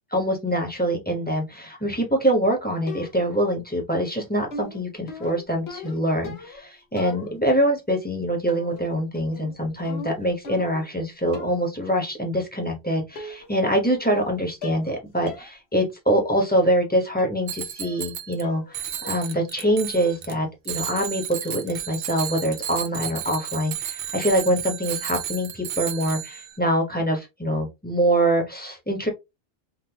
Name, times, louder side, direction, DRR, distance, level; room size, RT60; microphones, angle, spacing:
voice 1, 0.1-29.1, right 1 dB, 10° left, 1.0 m, -24 dB
sound 1, 2.9-3.4 4.5-6.7 7.0-7.6 8.5-8.9 9.2-11.0 11.3-11.7 12.6-12.7 13.2-13.6 13.9-14.3 14.6-14.9 15.3-15.5 15.9-16.0 17.2-17.4 17.8-18.1 18.4-18.8 19.0-19.4 19.7-20.0, left 3 dB, 85° left, 1.2 m, -40 dB
Bicycle bell, 17.5-18.4 18.7-20.3 20.6-26.6, right 10 dB, 70° right, 0.8 m, -33 dB
3.9 x 2.6 x 2.8 m
omnidirectional pair, 1.0 m